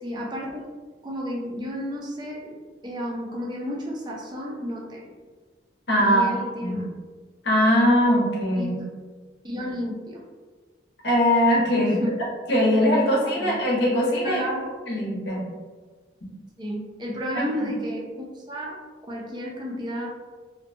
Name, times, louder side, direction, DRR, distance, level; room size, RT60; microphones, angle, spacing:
voice 1, 0.0-0.7 1.0-2.5 2.8-5.1 6.0-6.9 8.5-8.9 9.4-10.2 11.8-12.1 13.4-13.5 14.2-14.7 16.6-20.1, equal, 25° right, -2 dB, 0.4 m, -32 dB
voice 2, 5.9-6.3 6.6-6.8 7.4-8.8 11.0-12.0 12.5-14.4 14.9-15.4 17.3-17.7, equal, 65° left, -5 dB, 0.8 m, -21 dB
2.6 x 2.1 x 2.5 m, 1.4 s
head